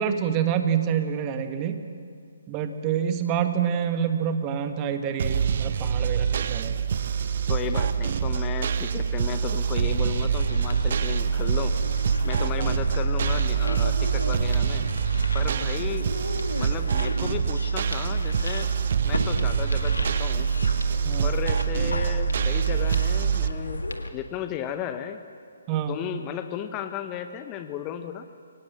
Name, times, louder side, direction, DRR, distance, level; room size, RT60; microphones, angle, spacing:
voice 1, 0.0-1.8 2.5-6.9 12.6-12.7 15.4-15.6 21.0-21.3 25.7-26.0, right 8 dB, 25° right, 8 dB, 1.5 m, -27 dB
sound 1, 5.2-23.5, right 7 dB, 50° right, 0.9 m, -25 dB
voice 2, 7.5-11.8 12.2-14.9 15.3-16.1 16.6-18.7 19.0-20.5 21.2-23.8 24.1-25.2 25.9-28.3, left 9 dB, 20° left, 8 dB, 1.0 m, -34 dB
sound 2, 10.3-24.1, left 2 dB, 80° left, 1.8 m, -34 dB
24.0 x 18.5 x 7.4 m, 2.3 s
figure-of-eight pair, 135°, 0 cm